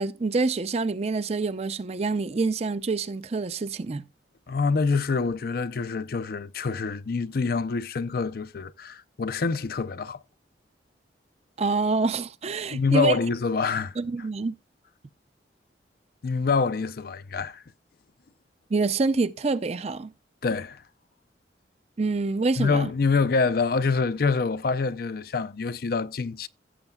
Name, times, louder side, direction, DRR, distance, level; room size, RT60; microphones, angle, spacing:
voice 1, 0.0-4.0 11.6-13.2 14.0-14.6 18.7-20.1 22.0-22.9, right 3 dB, 35° right, 0.5 m, -26 dB
voice 2, 4.5-10.2 12.7-14.0 16.2-17.6 20.4-20.8 22.6-26.5, left 4 dB, 55° left, 0.5 m, -26 dB
16.0 x 7.1 x 2.3 m
head